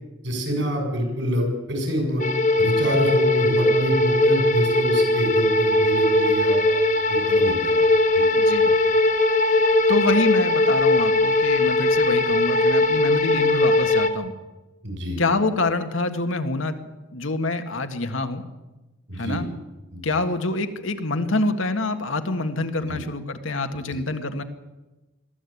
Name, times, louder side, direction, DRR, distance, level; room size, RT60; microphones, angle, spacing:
voice 1, 0.2-2.2 2.6-6.6 7.1-7.8 8.1-8.2 14.8-15.2 19.1-19.4 19.9-20.0 22.9-23.0, equal, 65° right, 3 dB, 6.9 m, -26 dB
sound 1, 2.2-14.1, left 2 dB, 40° left, 1.5 m, -19 dB
voice 2, 8.4-8.8 9.9-14.3 15.2-16.8 17.1-18.4 19.1-19.5 20.0-24.4, left 2 dB, 80° left, 7 dB, 1.8 m, -26 dB
22.0 x 14.0 x 8.6 m, 1.1 s
head